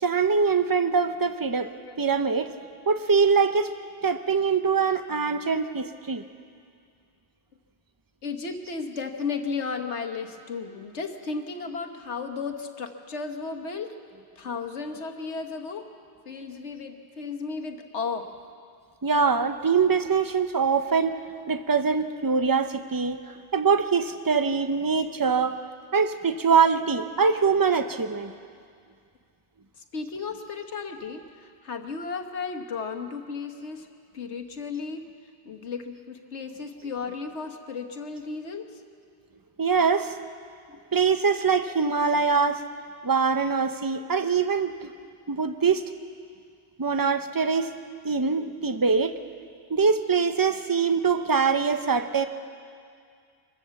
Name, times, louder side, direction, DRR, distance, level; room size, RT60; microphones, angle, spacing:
voice 1, 0.0-1.7 2.0-2.5 2.9-3.7 4.0-6.2 19.0-21.2 21.5-23.2 23.5-25.6 25.9-28.3 39.6-40.1 40.9-42.6 43.0-44.9 45.3-45.8 46.8-47.7 48.0-49.1 49.7-52.3, right 5 dB, 20° right, 9 dB, 0.7 m, -23 dB
voice 2, 8.2-14.0 14.4-15.9 16.3-18.3 29.8-33.9 34.1-35.1 35.5-38.8 40.7-40.8, left 5 dB, 80° left, 4 dB, 1.6 m, -34 dB
25.0 x 15.5 x 7.1 m, 2.2 s
omnidirectional pair, 1.1 m